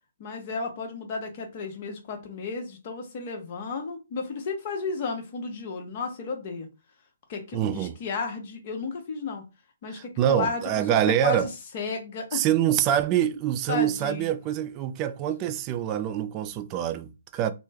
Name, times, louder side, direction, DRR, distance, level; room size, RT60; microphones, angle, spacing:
voice 1, 0.2-6.7 7.3-9.4 9.8-10.6 11.2-11.5 11.7-12.4 13.7-14.3, left 4 dB, 45° left, 1.0 m, -33 dB
voice 2, 7.5-7.9 10.2-11.5 12.3-17.5, right 11 dB, 30° right, 0.4 m, -25 dB
3.1 x 2.1 x 3.4 m
hypercardioid pair, 140°, 0 cm